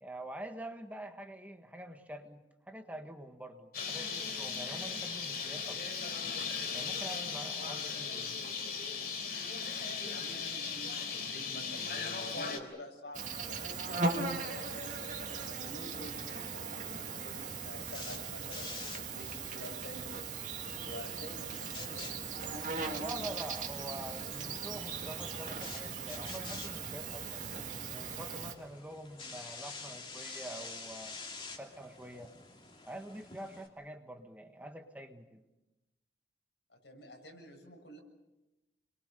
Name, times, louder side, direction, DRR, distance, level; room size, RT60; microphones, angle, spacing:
voice 1, 0.0-5.8 6.7-8.4 23.0-27.4 27.9-31.2 31.6-32.3 32.8-35.4, right 1 dB, 10° right, 5 dB, 1.4 m, -46 dB
Bird, 3.7-12.6, left 5 dB, 55° left, 3.6 m, -37 dB
voice 2, 10.1-13.8 14.3-20.1 20.7-22.3 36.7-38.0, left 1 dB, 85° left, 2 dB, 7.1 m, -49 dB
Insect, 13.1-28.5, right 4 dB, 45° right, 2.5 m, -39 dB
sound 1, 17.2-33.7, left 4 dB, 30° left, 2.9 m, -50 dB
29.0 x 22.5 x 6.8 m, 1.0 s
head